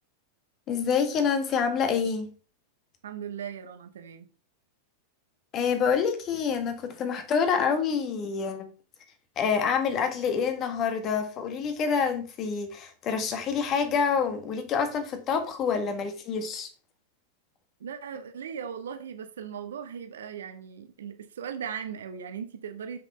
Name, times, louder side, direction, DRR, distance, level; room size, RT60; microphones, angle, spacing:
voice 1, 0.7-2.3 5.5-8.7 9.3-16.7, left 6 dB, 30° left, 1.7 m, -27 dB
voice 2, 3.0-4.3 17.8-23.0, right 7 dB, 65° right, 1.1 m, -38 dB
7.8 x 6.2 x 3.4 m
figure-of-eight pair, 90°, 0 cm